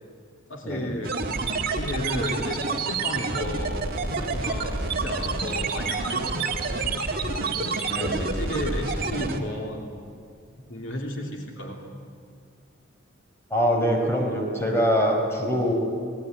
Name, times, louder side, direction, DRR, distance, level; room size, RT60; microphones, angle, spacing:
voice 1, 0.5-3.8 4.1-6.7 7.4-9.9 10.6-11.9, left 1 dB, 70° left, 1 dB, 2.7 m, -34 dB
sound 1, 1.0-9.4, right 3 dB, 45° right, 1.9 m, -28 dB
voice 2, 7.9-8.3 13.5-15.7, equal, 10° left, 0 dB, 4.5 m, -24 dB
25.0 x 18.0 x 9.2 m, 2.3 s
head